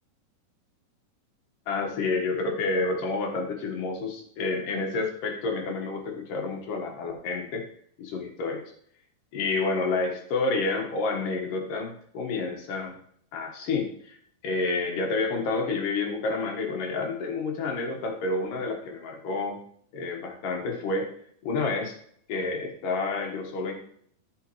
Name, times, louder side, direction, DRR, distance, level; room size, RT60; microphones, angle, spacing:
voice 1, 1.7-7.6 8.0-8.6 9.3-13.0 13.3-14.2 14.4-19.6 19.9-21.1 21.4-22.0 22.3-23.7, left 3 dB, 65° left, 2 dB, 3.0 m, -29 dB
13.0 x 6.7 x 3.2 m, 0.64 s
omnidirectional pair, 4.2 m